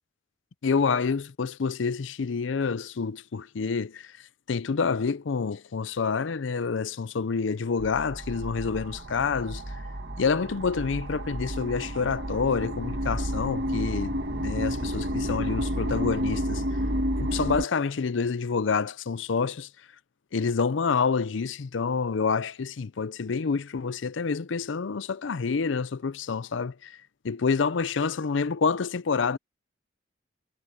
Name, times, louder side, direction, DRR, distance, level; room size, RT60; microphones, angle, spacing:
voice 1, 0.6-4.1 4.5-9.6 10.2-16.6 17.2-19.7 20.3-27.0 27.2-29.4, left 5 dB, 75° left, 0.5 m, -28 dB
sound 1, 7.8-17.7, equal, 60° right, 1.7 m, -31 dB
head